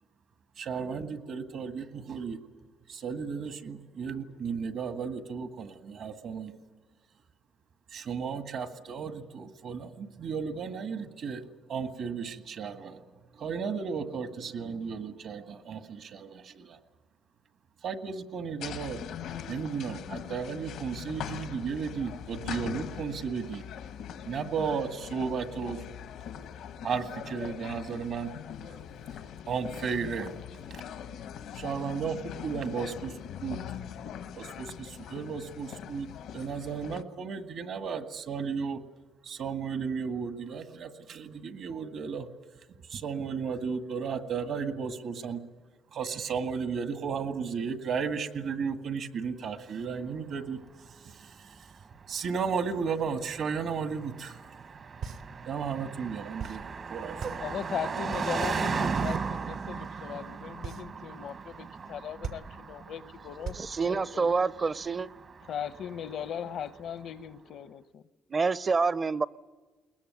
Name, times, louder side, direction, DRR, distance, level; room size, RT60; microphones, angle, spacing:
voice 1, 0.6-2.4 2.9-6.5 7.9-13.0 13.3-16.8 17.8-19.0 19.5-23.7 24.3-25.8 26.8-28.3 29.5-30.3 30.7-30.8 31.5-33.6 34.3-38.8 39.2-42.3 42.9-45.4 45.9-50.6 51.0-51.7 52.1-54.5 55.5-57.4, right 6 dB, 65° right, 1.9 m, -34 dB
sound 1, 18.6-37.0, left 9 dB, 90° left, 1.3 m, -41 dB
Car passing by, 50.4-66.8, right 5 dB, 50° right, 1.1 m, -37 dB
sound 2, 55.0-64.9, right 6 dB, 85° right, 2.4 m, -41 dB
voice 2, 57.4-63.6 63.8-64.3 65.4-68.0, left 9 dB, 75° left, 0.9 m, -38 dB
voice 3, 63.6-65.1 68.3-69.3, right 4 dB, 35° right, 0.7 m, -27 dB
21.5 x 20.0 x 9.5 m
cardioid pair, 90°, 0 cm